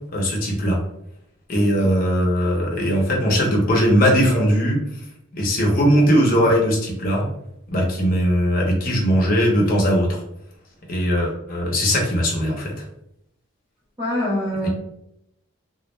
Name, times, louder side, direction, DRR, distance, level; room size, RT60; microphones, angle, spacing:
voice 1, 0.1-0.8 1.5-4.8 5.4-7.3 7.7-10.2 10.9-12.8 14.6-14.7, equal, 45° left, -1 dB, 0.6 m, -19 dB
voice 2, 14.0-14.7, left 1 dB, 15° right, -9 dB, 0.6 m, -23 dB
2.2 x 2.0 x 3.0 m, 0.79 s
head